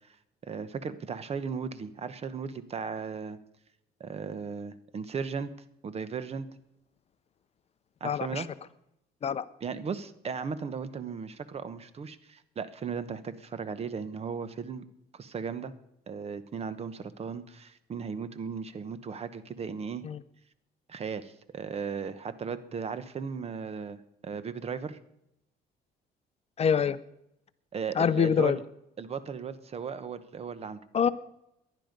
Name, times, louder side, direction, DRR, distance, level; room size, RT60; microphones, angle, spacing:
voice 1, 0.4-3.4 4.0-5.5 5.8-6.5 8.0-8.5 9.6-14.8 15.1-15.7 16.1-20.0 20.9-25.0 27.7-28.6 29.0-30.8 31.0-31.1, right 6 dB, 35° right, 14 dB, 1.1 m, -36 dB
voice 2, 8.0-8.4 9.2-9.4 20.0-20.2 26.6-27.0 28.0-28.6 30.9-31.1, left 7 dB, 40° left, 14 dB, 0.6 m, -25 dB
18.5 x 11.5 x 5.3 m, 0.83 s
cardioid pair, 110°, 17 cm